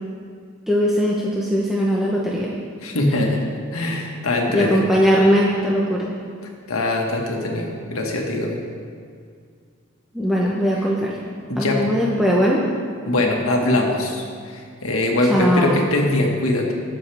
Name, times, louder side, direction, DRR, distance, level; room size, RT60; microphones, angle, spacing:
voice 1, 0.7-2.5 4.5-6.1 10.1-11.2 11.6-12.6 15.3-15.8, equal, ahead, -5 dB, 0.9 m, -19 dB
voice 2, 2.8-3.4 3.7-4.8 6.7-8.6 11.5-11.9 13.1-16.7, left 2 dB, 75° left, 0 dB, 1.7 m, -22 dB
20.5 x 7.0 x 3.5 m, 2.1 s
head